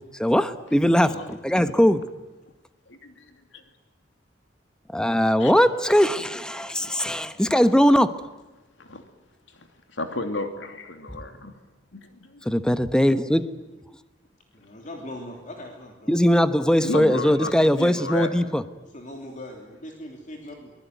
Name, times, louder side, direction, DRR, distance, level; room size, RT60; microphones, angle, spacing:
voice 1, 0.2-2.0 4.9-8.1 12.4-13.5 16.1-18.6, equal, 5° left, 11 dB, 1.2 m, -20 dB
voice 2, 2.9-3.6 5.4-5.5 6.5-7.1 8.8-9.0 9.5-11.5 11.9-12.4 16.8-18.5, left 2 dB, 85° left, 6 dB, 2.9 m, -33 dB
voice 3, 14.5-16.1 18.9-20.7, left 1 dB, 45° left, 2 dB, 3.2 m, -40 dB
24.0 x 21.0 x 9.4 m, 1.1 s
head